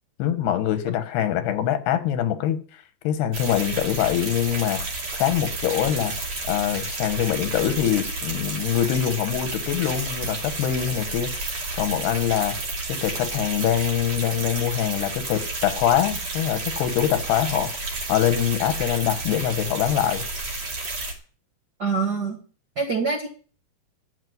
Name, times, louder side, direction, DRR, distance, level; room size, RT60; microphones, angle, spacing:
voice 1, 0.2-2.6 3.0-4.9 5.2-6.1 6.5-11.3 11.8-12.6 12.9-17.7 18.1-20.2, left 10 dB, 85° left, 3.3 m, -24 dB
sound 1, 3.3-21.1, right 2 dB, 45° right, 3.5 m, -31 dB
voice 2, 21.8-22.4 22.8-23.3, right 4 dB, 60° right, 1.0 m, -25 dB
14.5 x 5.4 x 9.5 m
omnidirectional pair, 4.5 m